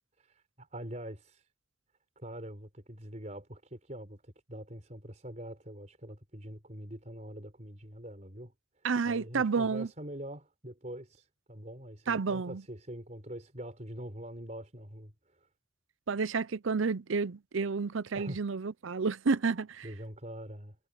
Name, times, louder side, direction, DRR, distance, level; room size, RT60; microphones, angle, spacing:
voice 1, 0.2-1.5 2.2-8.5 9.1-15.5 18.1-18.4 19.8-20.8, right 1 dB, 35° right, 4.5 m, -44 dB
voice 2, 8.8-9.9 12.1-12.6 16.1-19.9, right 4 dB, 75° right, 0.6 m, -30 dB
head